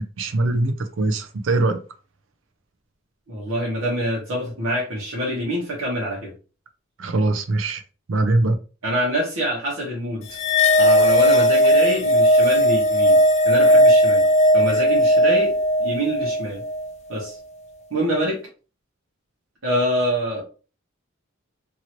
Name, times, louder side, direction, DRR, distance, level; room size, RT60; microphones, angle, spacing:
voice 1, 0.0-1.8 7.0-7.8 8.1-8.6, right 2 dB, 70° right, 0.5 m, -22 dB
voice 2, 3.3-6.3 8.8-10.4 10.8-13.2 13.4-14.2 14.5-16.6 17.1-17.4 17.9-18.4 19.6-20.4, equal, 90° right, 1.1 m, -25 dB
sound 1, 10.3-16.9, equal, 35° left, 0.3 m, -17 dB
2.9 x 2.7 x 2.9 m
head